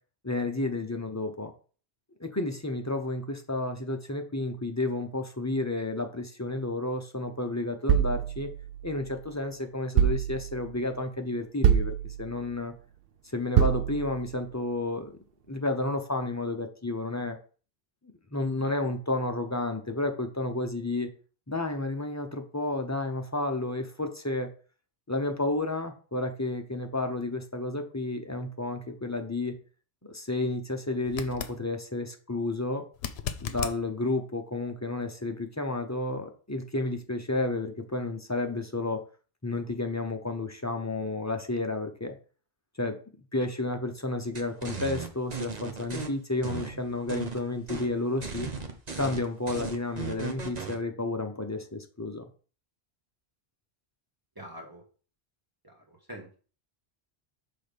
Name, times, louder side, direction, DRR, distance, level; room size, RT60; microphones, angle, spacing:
voice 1, 0.2-1.5 2.2-8.5 8.8-12.7 13.3-15.2 15.5-17.4 18.3-21.1 21.5-24.5 25.1-29.6 30.0-32.8 33.4-39.0 39.4-42.2 42.8-43.0 43.3-48.5 48.9-52.2, left 2 dB, 20° left, 4 dB, 0.7 m, -31 dB
sound 1, 7.9-9.3 10.0-10.8 11.6-12.5 13.6-14.4, right 9 dB, 70° right, 0.8 m, -26 dB
sound 2, 31.0-31.6 32.9-33.8 36.8-36.9, left 8 dB, 85° left, 0.9 m, -35 dB
sound 3, 44.3-46.1 46.4-47.4 47.7-47.9 48.2-50.8, right 5 dB, 45° right, 1.0 m, -36 dB
voice 2, 54.3-54.8 55.6-56.4, equal, 20° right, -1 dB, 1.6 m, -45 dB
6.3 x 3.8 x 5.1 m, 0.39 s
omnidirectional pair, 1.0 m